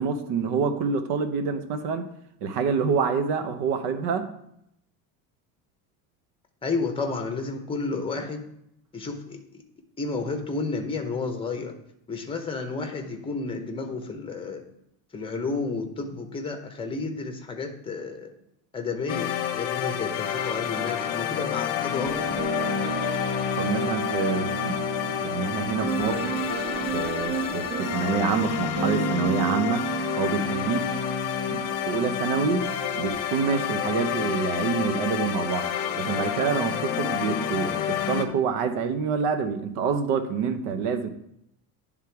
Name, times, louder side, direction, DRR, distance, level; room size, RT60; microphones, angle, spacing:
voice 1, 0.0-2.1 2.4-4.3 23.5-26.3 26.9-29.9 30.2-30.9 31.5-32.7 32.9-35.7 35.9-41.1, right 5 dB, 70° right, 9 dB, 1.0 m, -27 dB
voice 2, 6.6-8.4 8.9-9.6 10.0-11.7 12.1-14.6 15.1-18.3 18.7-22.3, left 4 dB, 15° left, 5 dB, 0.8 m, -31 dB
sound 1, 19.1-38.3, left 9 dB, 45° left, 0.7 m, -29 dB
sound 2, 22.0-32.3 32.6-33.2, right 4 dB, 30° right, 1.2 m, -32 dB
10.0 x 3.7 x 4.6 m, 0.77 s
cardioid pair, 145°, 41 cm